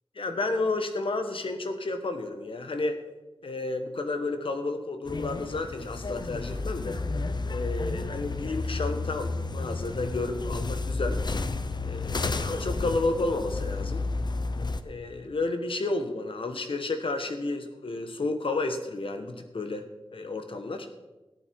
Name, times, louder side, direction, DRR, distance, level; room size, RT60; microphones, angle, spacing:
voice 1, 0.2-3.0 3.4-7.0 7.5-11.2 11.9-14.0 14.8-19.8 20.1-20.9, left 2 dB, 75° left, 7 dB, 1.3 m, -31 dB
sound 1, 5.1-14.8, left 3 dB, 55° left, 0.7 m, -31 dB
13.5 x 11.0 x 4.6 m, 1.1 s
wide cardioid pair, 85°, 9 cm